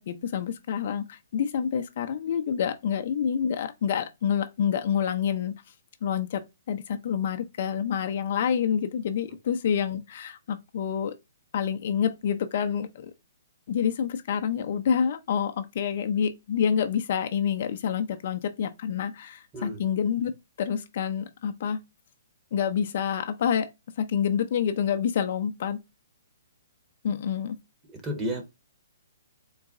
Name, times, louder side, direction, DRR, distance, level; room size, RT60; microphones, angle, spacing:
voice 1, 0.0-5.5 6.0-11.1 11.5-13.1 13.7-20.3 20.6-21.8 22.5-23.7 24.0-25.8 27.0-27.6, left 8 dB, 50° left, 0.5 m, -27 dB
voice 2, 27.9-28.4, equal, 15° right, 1.0 m, -32 dB
3.9 x 2.2 x 3.5 m
hypercardioid pair, 155°, 0 cm